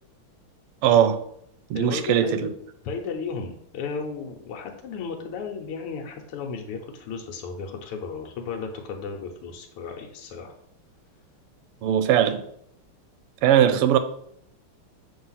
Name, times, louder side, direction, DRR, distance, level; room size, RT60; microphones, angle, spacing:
voice 1, 0.8-1.2 1.7-2.5 11.8-12.4 13.4-14.0, right 10 dB, 90° right, 1.6 m, -19 dB
voice 2, 1.7-2.5 2.8-10.5, left 5 dB, 90° left, 1.8 m, -34 dB
7.0 x 3.3 x 5.6 m
omnidirectional pair, 2.4 m